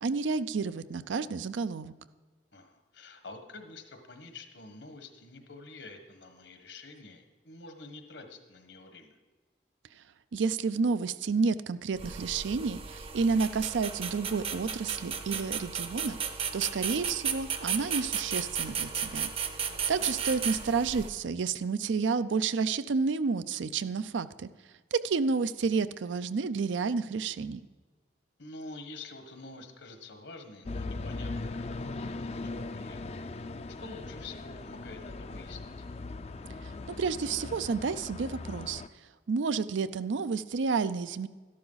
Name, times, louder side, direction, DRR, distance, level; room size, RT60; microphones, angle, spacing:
voice 1, 0.0-1.9 10.3-16.2 16.5-19.3 19.9-24.5 24.9-27.6 36.9-38.8 39.3-41.3, right 5 dB, 90° right, 14 dB, 0.5 m, -30 dB
voice 2, 2.5-9.2 19.7-20.1 28.4-33.0 33.8-35.9, left 3 dB, 75° left, 6 dB, 1.4 m, -48 dB
sound 1, 12.0-21.1, right 7 dB, 30° right, 0.6 m, -34 dB
sound 2, 30.7-38.9, left 3 dB, 35° left, 0.4 m, -39 dB
12.5 x 11.5 x 4.0 m, 1.4 s
head